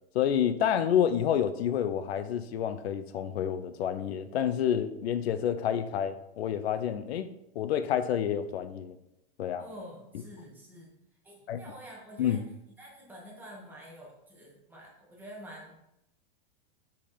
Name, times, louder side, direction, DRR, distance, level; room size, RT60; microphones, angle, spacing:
voice 1, 0.1-9.0 9.4-9.6 11.5-11.6 12.2-12.4, left 9 dB, 90° left, 11 dB, 0.6 m, -29 dB
voice 2, 9.6-10.9 11.2-12.4 12.8-15.7, equal, 5° right, -4 dB, 1.9 m, -48 dB
5.4 x 5.2 x 4.2 m, 0.84 s
supercardioid pair, 145°, 31 cm